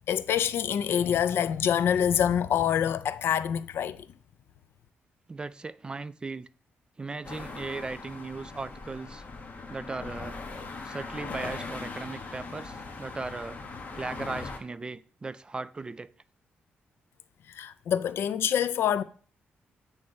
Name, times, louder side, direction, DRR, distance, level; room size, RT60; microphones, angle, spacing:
voice 1, 0.1-4.1 17.5-19.0, left 9 dB, 75° left, 0.4 m, -26 dB
voice 2, 5.3-6.5 7.0-9.2 9.7-10.4 10.8-13.6 14.0-16.1, right 3 dB, 20° right, 0.3 m, -37 dB
sound 1, 7.2-14.6, left 4 dB, 40° left, 1.2 m, -40 dB
8.5 x 3.2 x 5.3 m
cardioid pair, 130°, 4 cm